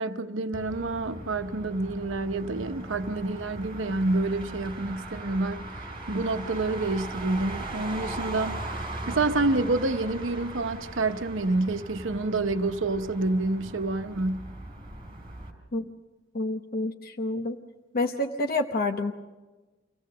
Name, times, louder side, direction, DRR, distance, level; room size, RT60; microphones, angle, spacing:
voice 1, 0.0-5.7 6.1-8.6 9.1-14.5, right 2 dB, 85° right, 0.9 m, -28 dB
Motor vehicle (road), 0.5-15.5, right 2 dB, 25° right, 3.6 m, -39 dB
voice 2, 16.3-17.6 17.9-19.1, left 2 dB, 50° left, 0.9 m, -28 dB
25.5 x 17.0 x 6.6 m
head